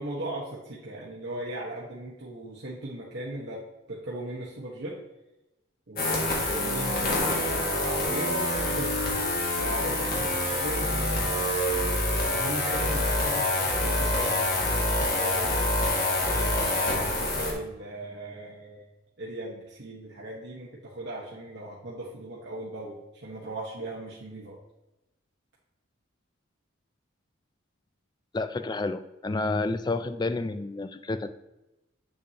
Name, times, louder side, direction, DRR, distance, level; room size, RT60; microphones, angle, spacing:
voice 1, 0.0-3.6 3.9-5.0 5.9-8.9 9.6-11.7 12.3-15.6 16.2-18.9 19.2-24.6, right 1 dB, 60° right, -5 dB, 1.2 m, -38 dB
sound 1, 6.0-17.5, left 1 dB, 50° left, 1.9 m, -26 dB
voice 2, 28.3-31.3, left 3 dB, 20° left, 10 dB, 0.4 m, -30 dB
7.8 x 7.0 x 2.9 m, 0.97 s
head